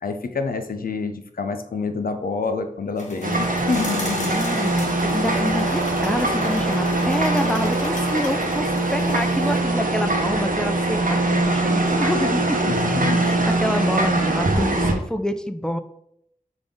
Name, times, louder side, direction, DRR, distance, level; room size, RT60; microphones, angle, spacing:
voice 1, 0.0-4.4 12.6-13.5, left 4 dB, 85° left, 7 dB, 0.5 m, -27 dB
sound 1, 3.0-9.6, left 1 dB, 55° left, 1.0 m, -33 dB
sound 2, 3.2-14.9, right 2 dB, 65° right, 0.8 m, -22 dB
voice 2, 4.2-12.6 13.2-15.8, equal, 5° left, 9 dB, 0.4 m, -27 dB
5.2 x 2.6 x 3.5 m, 0.73 s
wide cardioid pair, 50°, 15 cm